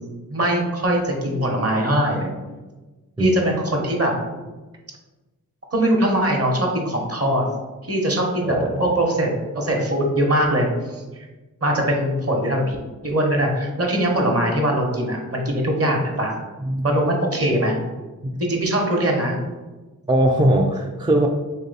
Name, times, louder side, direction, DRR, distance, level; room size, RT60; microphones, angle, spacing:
voice 1, 0.3-2.3 3.2-4.4 5.7-7.5 7.9-11.2 11.6-12.8 13.0-16.4 16.8-17.8 18.4-19.4, right 1 dB, 40° right, 1 dB, 1.0 m, -21 dB
voice 2, 8.4-8.9 16.6-17.0 18.2-18.4 20.1-21.3, right 1 dB, 15° right, 1 dB, 0.3 m, -20 dB
3.1 x 2.7 x 4.0 m, 1.2 s
cardioid pair, 40°, 36 cm